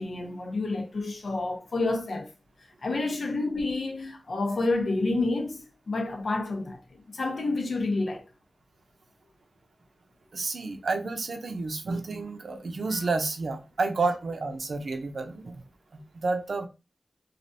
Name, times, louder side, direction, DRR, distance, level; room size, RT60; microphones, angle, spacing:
voice 1, 0.0-2.3 2.8-6.8 7.1-8.3 12.9-13.1, left 2 dB, 75° left, 0.7 m, -29 dB
voice 2, 10.3-15.6 15.9-16.7, right 3 dB, 75° right, 0.6 m, -30 dB
3.3 x 2.4 x 2.6 m
wide cardioid pair, 75°, 0 cm